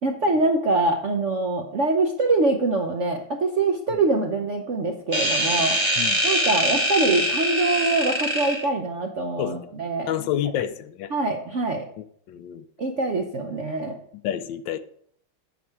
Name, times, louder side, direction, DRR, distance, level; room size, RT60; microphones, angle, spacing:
voice 1, 0.0-5.8 6.2-10.1 11.1-11.9 12.8-14.0, right 2 dB, 60° right, 0.8 m, -24 dB
sound 1, 5.1-8.7, equal, 15° right, 1.0 m, -23 dB
voice 2, 10.1-11.1 12.3-12.6 14.2-14.8, left 11 dB, 75° left, 1.2 m, -28 dB
8.8 x 6.8 x 4.7 m
omnidirectional pair, 2.2 m